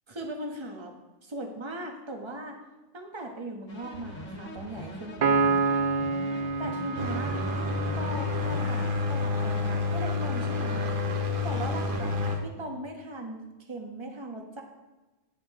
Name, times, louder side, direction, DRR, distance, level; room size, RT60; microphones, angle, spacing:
voice 1, 0.1-0.9 1.2-2.6 2.9-5.6 6.6-7.4 8.0-8.8 9.1-10.9 11.4-14.6, right 1 dB, 25° right, 2 dB, 1.2 m, -38 dB
sound 1, 3.7-9.1, equal, 85° left, 1.8 m, -42 dB
Piano, 5.2-8.8, right 4 dB, 85° right, 0.3 m, -28 dB
sound 2, 7.0-12.4, left 3 dB, 45° right, 1.2 m, -29 dB
10.0 x 8.4 x 3.6 m, 1.1 s
omnidirectional pair, 1.3 m